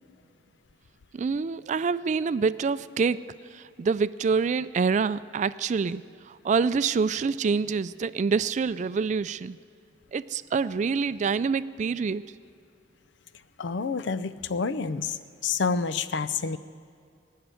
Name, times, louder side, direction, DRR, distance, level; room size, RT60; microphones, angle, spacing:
voice 1, 1.1-3.2 3.5-9.6 10.1-12.2, right 5 dB, 40° right, 16 dB, 0.3 m, -26 dB
voice 2, 13.6-16.6, left 5 dB, 90° left, 14 dB, 0.6 m, -28 dB
19.0 x 6.7 x 9.0 m, 2.4 s
head